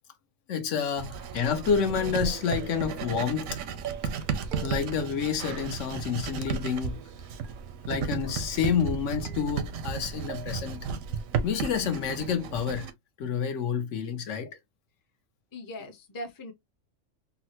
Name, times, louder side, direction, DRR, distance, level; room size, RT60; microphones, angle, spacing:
voice 1, 0.5-3.6 4.6-7.0 7.9-10.9 11.4-12.9 13.2-14.5, left 7 dB, 70° left, 1.0 m, -29 dB
Writing, 1.0-12.9, right 6 dB, 80° right, 1.0 m, -34 dB
sound 1, 3.2-3.5 3.8-4.2 4.5-5.0 5.6-6.2 6.5-7.1 7.4-8.0 8.3-8.9 9.2-9.9 10.3-10.8, right 11 dB, 65° right, 0.5 m, -46 dB
voice 2, 15.5-16.5, left 1 dB, 25° left, 0.5 m, -40 dB
3.9 x 2.0 x 2.8 m
omnidirectional pair, 1.4 m